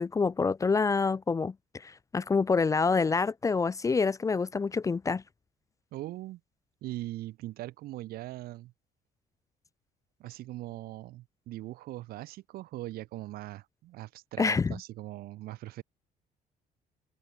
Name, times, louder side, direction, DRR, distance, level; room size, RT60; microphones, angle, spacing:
voice 1, 0.0-5.2 14.4-14.8, left 4 dB, 20° left, 0.5 m, -27 dB
voice 2, 5.9-6.4 6.8-8.7 10.2-15.8, right 16 dB, 85° right, 6.4 m, -41 dB
cardioid pair, 125°, 15 cm